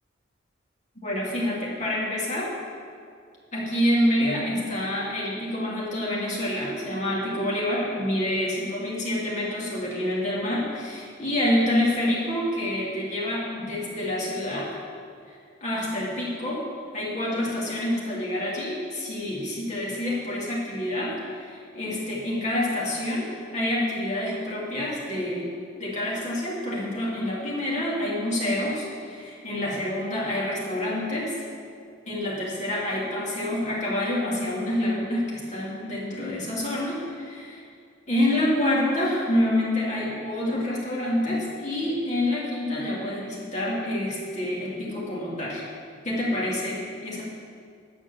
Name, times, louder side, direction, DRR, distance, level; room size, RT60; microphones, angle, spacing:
voice 1, 1.0-2.5 3.5-14.8 15.3-16.7 16.9-25.5 25.8-31.4 32.1-37.6 38.1-45.7 46.0-47.2, left 1 dB, 35° left, -6 dB, 2.5 m, -27 dB
9.4 x 6.1 x 6.9 m, 2.3 s
head